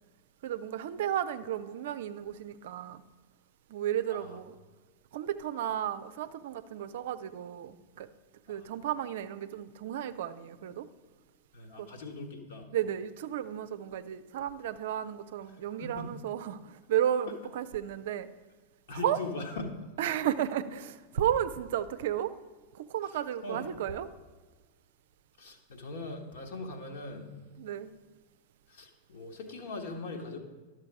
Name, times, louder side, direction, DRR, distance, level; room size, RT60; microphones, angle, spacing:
voice 1, 0.4-3.0 3.7-4.6 5.1-8.1 8.5-10.9 11.8-11.9 12.7-18.3 18.9-19.2 20.0-22.3 22.7-24.1 27.6-27.9, right 10 dB, 55° right, 12 dB, 0.5 m, -33 dB
voice 2, 11.5-12.7 15.8-16.1 17.3-17.4 18.9-19.6 23.1-23.2 23.4-23.7 25.4-27.3 28.7-30.4, left 3 dB, 60° left, 3 dB, 1.4 m, -40 dB
11.5 x 6.7 x 4.7 m, 1.4 s
figure-of-eight pair, 90°, 0 cm